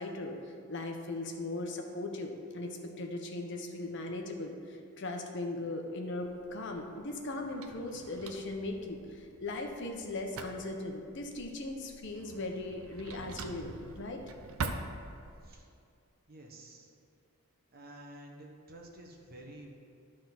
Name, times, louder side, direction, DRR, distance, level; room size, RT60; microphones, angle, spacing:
voice 1, 0.0-14.2, left 2 dB, 55° left, 2 dB, 0.9 m, -38 dB
Drawer open or close, 6.2-15.6, right 3 dB, 75° right, 0.6 m, -45 dB
voice 2, 16.3-16.9 17.7-19.7, right 1 dB, 45° right, 0 dB, 1.1 m, -50 dB
11.5 x 3.8 x 5.9 m, 2.4 s
head